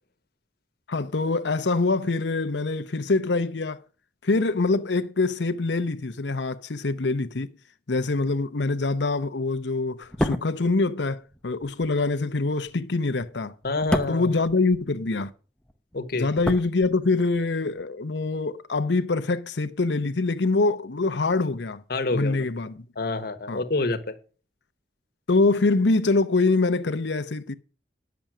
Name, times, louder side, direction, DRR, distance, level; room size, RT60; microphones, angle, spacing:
voice 1, 0.9-3.8 4.2-7.5 7.9-13.5 14.1-15.3 16.1-21.8 22.1-22.9 23.5-23.6 25.3-27.5, left 3 dB, 80° left, 0.8 m, -24 dB
sound 1, 10.0-15.3 15.6-17.4 17.7-17.9, left 1 dB, 5° left, 0.8 m, -32 dB
voice 2, 13.6-14.3 15.9-16.3 21.9-22.5 23.0-24.1, left 2 dB, 60° left, 1.3 m, -27 dB
10.5 x 7.0 x 6.1 m
head